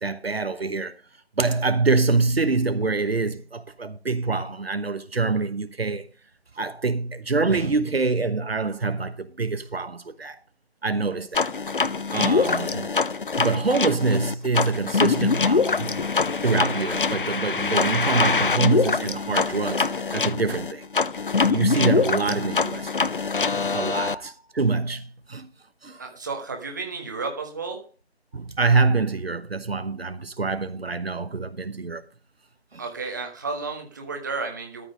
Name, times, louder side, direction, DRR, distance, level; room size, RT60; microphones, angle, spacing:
voice 1, 0.0-0.9 1.4-6.1 6.6-10.4 10.8-11.5 12.1-12.9 13.4-16.1 16.4-20.8 21.5-23.1 23.7-25.5 25.8-26.0 28.3-32.0 32.7-32.8, right 3 dB, 65° right, 1.1 m, -25 dB
sound 1, 11.3-24.2, left 4 dB, 55° left, 0.5 m, -24 dB
voice 2, 26.0-27.9 32.8-34.9, right 4 dB, 15° right, 1.3 m, -32 dB
13.5 x 6.2 x 5.0 m
figure-of-eight pair, 165°, 32 cm